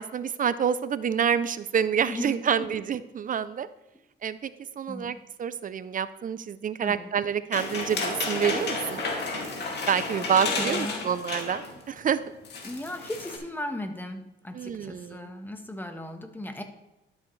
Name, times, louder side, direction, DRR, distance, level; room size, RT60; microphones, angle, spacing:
voice 1, 0.0-3.7 4.2-4.5 4.8-9.0 9.9-12.2 14.5-15.3, right 8 dB, 45° right, 15 dB, 0.5 m, -27 dB
voice 2, 2.1-2.7 4.9-5.2 6.8-7.1 10.6-11.1 12.6-16.6, left 1 dB, 10° left, 6 dB, 1.2 m, -36 dB
sound 1, 7.5-11.8 12.1-12.2 12.4-13.4, left 3 dB, 55° left, 2.3 m, -32 dB
11.5 x 7.0 x 3.2 m, 0.93 s
cardioid pair, 90°, 20 cm